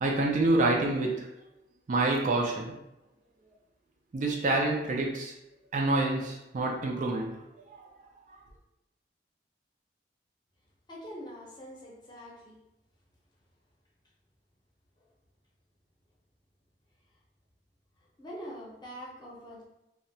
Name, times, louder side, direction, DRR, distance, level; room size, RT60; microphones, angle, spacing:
voice 1, 0.0-1.3 1.9-2.7 4.1-5.3 5.7-7.4 7.7-7.9, right 2 dB, 45° right, 0 dB, 0.3 m, -27 dB
voice 2, 10.9-12.6 15.0-15.1 18.2-19.6, equal, 25° left, -5 dB, 0.7 m, -44 dB
2.7 x 2.1 x 2.7 m, 0.91 s
head